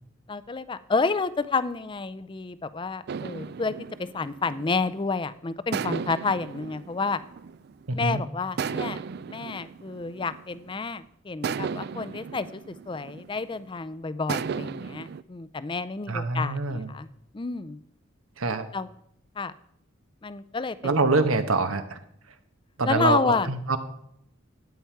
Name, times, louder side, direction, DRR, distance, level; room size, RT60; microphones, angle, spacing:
voice 1, 0.3-3.7 4.0-7.2 7.9-9.0 9.3-17.1 17.3-17.8 18.7-18.9 19.4-19.5 20.2-21.1 22.8-23.5, left 4 dB, 25° left, 15 dB, 0.4 m, -30 dB
sound 1, 3.1-5.1 5.7-8.0 8.6-10.8 11.4-13.6 14.3-15.2, right 6 dB, 50° right, 0.3 m, -35 dB
voice 2, 7.9-8.2 16.1-16.9 18.4-18.7 20.8-22.0 22.8-23.8, right 3 dB, 85° right, 8 dB, 1.2 m, -25 dB
13.0 x 9.2 x 4.7 m, 0.73 s
head